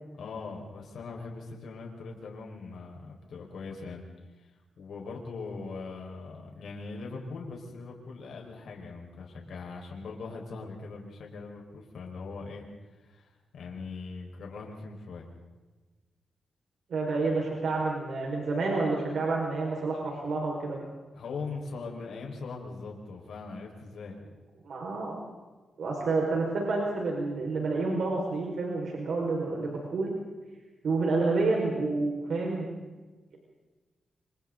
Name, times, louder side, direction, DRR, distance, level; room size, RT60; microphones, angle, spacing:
voice 1, 0.1-4.0 4.4-4.5 4.8-12.7 13.0-15.3 21.1-24.2, left 4 dB, 80° left, 0 dB, 5.1 m, -41 dB
voice 2, 16.9-20.8 24.6-25.2 25.8-30.1 30.8-32.9, right 3 dB, 70° right, -1 dB, 5.1 m, -29 dB
27.5 x 27.5 x 3.9 m, 1.2 s
cardioid pair, 90°, 0 cm